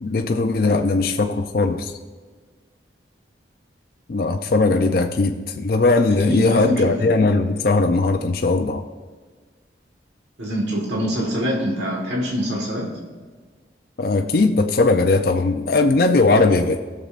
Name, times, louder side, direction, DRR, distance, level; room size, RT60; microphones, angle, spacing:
voice 1, 0.0-1.9 4.1-8.8 14.0-16.8, left 3 dB, 55° left, 5 dB, 0.5 m, -19 dB
voice 2, 6.3-7.0 10.4-12.9, equal, 80° right, -1 dB, 1.5 m, -24 dB
17.0 x 6.7 x 2.5 m, 1.5 s
head